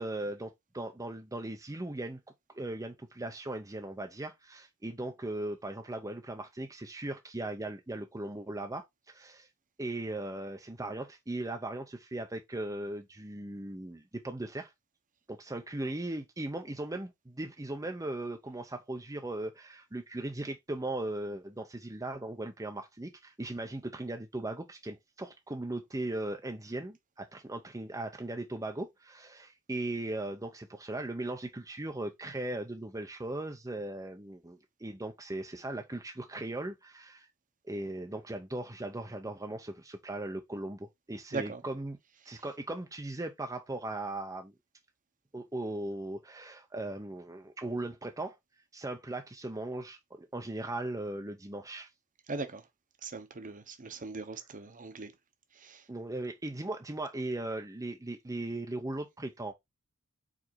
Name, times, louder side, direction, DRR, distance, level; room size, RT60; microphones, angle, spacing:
voice 1, 0.0-2.2 2.5-9.5 9.8-14.7 15.3-37.3 37.7-42.0 42.3-44.5 45.3-48.4 48.7-51.9 55.9-59.5, right 2 dB, 15° right, 0.7 m, -38 dB
voice 2, 41.3-41.6 52.3-52.6 53.0-55.1 55.6-55.8, right 3 dB, 40° right, 1.0 m, -39 dB
4.9 x 4.3 x 4.5 m
head